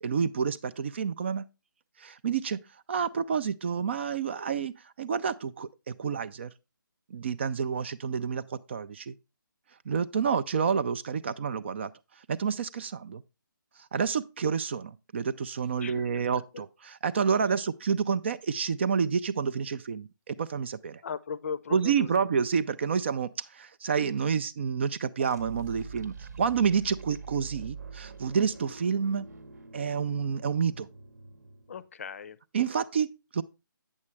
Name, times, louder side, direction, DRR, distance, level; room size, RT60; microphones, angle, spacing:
voice 1, 0.0-1.5 2.0-2.6 2.9-6.5 7.1-9.1 9.9-11.9 12.2-13.2 13.9-21.0 21.7-29.3 29.7-30.9 32.5-33.4, right 6 dB, 35° right, 0.4 m, -29 dB
voice 2, 15.8-16.2 16.5-16.6 21.0-22.3 31.7-32.4, left 6 dB, 40° left, 0.6 m, -38 dB
sound 1, 25.2-31.8, right 4 dB, 50° right, 1.0 m, -45 dB
8.6 x 7.2 x 3.2 m
figure-of-eight pair, 150°, 11 cm